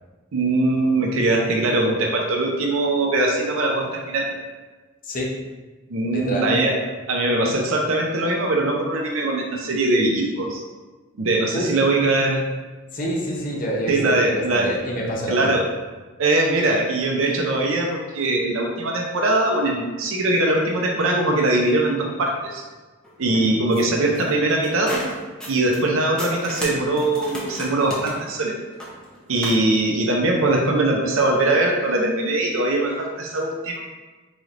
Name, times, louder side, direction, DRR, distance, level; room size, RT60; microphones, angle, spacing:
voice 1, 0.3-4.4 5.9-6.7 7.1-10.6 11.2-12.4 13.9-14.7 15.3-15.6 16.2-22.6 23.2-25.0 25.5-28.6 29.3-33.8, right 2 dB, 75° right, 0 dB, 0.5 m, -21 dB
voice 2, 6.1-6.5 11.5-11.7 12.9-15.6, equal, 40° left, -2 dB, 0.7 m, -27 dB
sound 1, 23.0-25.9 26.2-29.6, equal, 5° left, 0.6 m, -34 dB
4.0 x 3.2 x 2.5 m, 1.3 s
head